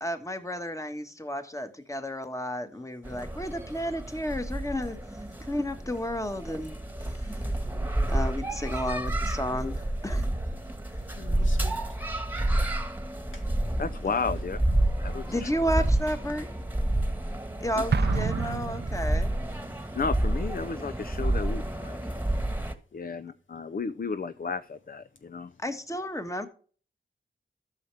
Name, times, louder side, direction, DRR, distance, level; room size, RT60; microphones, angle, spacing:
voice 1, 0.0-5.0 5.5-7.4 8.1-10.3 15.3-16.5 17.6-19.3 25.6-26.5, equal, 15° left, 1.5 m, -32 dB
sound 1, 3.0-22.7, right 1 dB, 10° right, 1.5 m, -30 dB
voice 2, 10.6-11.9 13.3-13.5 16.9-17.0 22.0-22.6, left 3 dB, 85° left, 1.7 m, -49 dB
voice 3, 13.8-14.6 15.1-15.5 17.7-17.8 19.9-22.0 22.9-25.5, left 5 dB, 50° left, 0.6 m, -33 dB
Explosion, 17.9-19.6, right 7 dB, 60° right, 0.5 m, -30 dB
12.5 x 6.6 x 3.4 m
wide cardioid pair, 55°, 19 cm